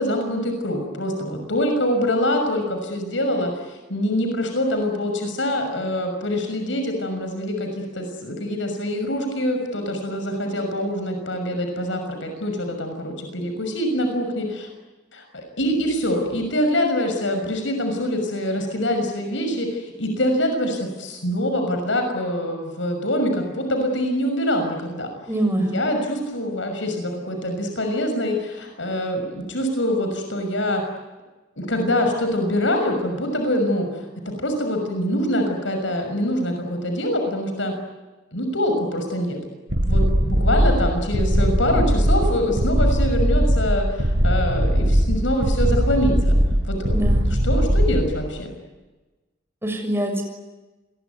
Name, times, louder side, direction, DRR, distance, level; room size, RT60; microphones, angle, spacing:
voice 1, 0.0-14.7 15.1-25.1 25.7-30.8 31.6-37.7 38.3-39.4 39.8-46.3 46.6-48.5, left 1 dB, 75° left, 5 dB, 6.2 m, -24 dB
voice 2, 25.3-25.8 46.9-47.2 49.6-50.2, right 1 dB, 15° right, 4 dB, 6.4 m, -24 dB
sound 1, 39.7-48.1, equal, 70° right, 5.6 m, -19 dB
28.0 x 22.5 x 9.5 m, 1.2 s
head